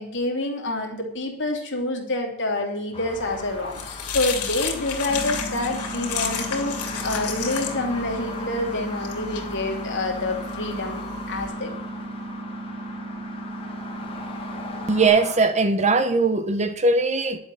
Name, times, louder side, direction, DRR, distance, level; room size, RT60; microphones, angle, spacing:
voice 1, 0.0-11.7, left 2 dB, 55° left, 2.8 m, -27 dB
sound 1, 2.9-15.4, left 3 dB, 25° left, 1.9 m, -38 dB
sound 2, 3.2-11.5, left 7 dB, 85° left, 2.8 m, -33 dB
sound 3, 5.1-15.1, right 2 dB, 5° right, 4.4 m, -36 dB
voice 2, 14.9-17.4, right 3 dB, 30° right, 0.9 m, -20 dB
11.0 x 7.7 x 7.5 m
head